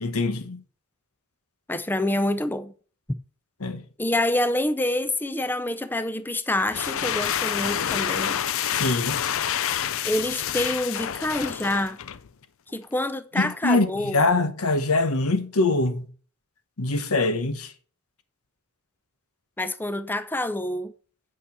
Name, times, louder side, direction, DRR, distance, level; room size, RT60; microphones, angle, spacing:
voice 1, 0.0-0.6 3.6-3.8 8.7-9.2 13.4-16.1 16.8-17.7, left 2 dB, 85° left, 1.2 m, -23 dB
voice 2, 1.7-2.7 4.0-8.4 10.0-12.0 12.7-14.2 19.6-20.9, left 1 dB, 10° left, 0.5 m, -27 dB
sound 1, 6.6-12.3, left 9 dB, 70° left, 0.6 m, -28 dB
8.4 x 5.6 x 6.9 m
head